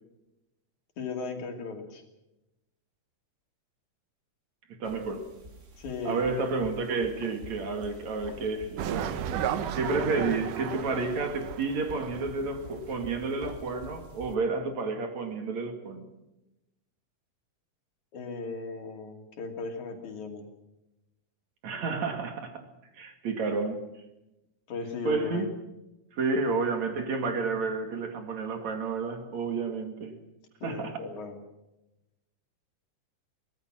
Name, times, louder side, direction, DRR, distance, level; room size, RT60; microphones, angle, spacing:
voice 1, 1.0-2.0 5.8-6.2 18.1-20.4 24.7-25.5 30.6-31.4, left 4 dB, 65° left, 4.0 m, -36 dB
voice 2, 4.7-5.3 6.0-8.9 9.7-16.1 21.6-22.6 22.9-23.8 25.0-25.5 26.1-30.2 30.6-31.0, right 4 dB, 60° right, 3.4 m, -30 dB
sound 1, 4.8-14.4, right 2 dB, 30° right, 1.5 m, -47 dB
sound 2, 8.8-12.7 12.9-13.0, right 9 dB, 80° right, 2.7 m, -33 dB
24.0 x 19.0 x 6.2 m
omnidirectional pair, 3.7 m